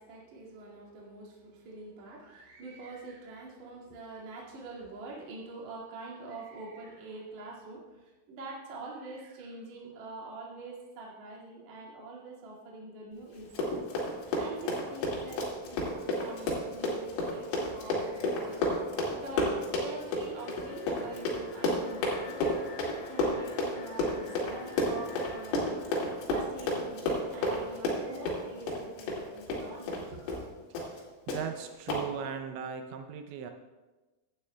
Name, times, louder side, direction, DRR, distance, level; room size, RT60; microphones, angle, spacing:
voice 1, 0.0-13.8 14.3-22.6 23.1-30.4, right 3 dB, 50° right, -4 dB, 2.6 m, -45 dB
Run, 13.4-30.0 30.3-30.5 30.8-31.0 31.3-31.4 31.9-32.0, left 1 dB, 85° left, 4.9 m, -31 dB
Alarm, 20.3-27.4, left 4 dB, 70° left, 4.2 m, -48 dB
voice 2, 30.8-33.5, right 7 dB, 85° right, 6 dB, 2.6 m, -39 dB
16.5 x 11.5 x 2.2 m, 1.2 s
omnidirectional pair, 5.7 m